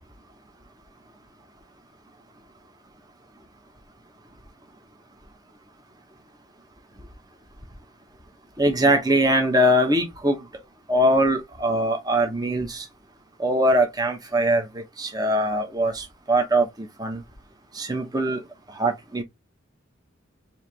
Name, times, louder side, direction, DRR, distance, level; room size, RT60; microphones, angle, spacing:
voice 1, 8.6-10.5 10.9-12.8 13.4-17.2 17.7-18.4 18.7-19.2, right 1 dB, 20° right, 1.0 m, -22 dB
4.5 x 2.9 x 3.3 m
head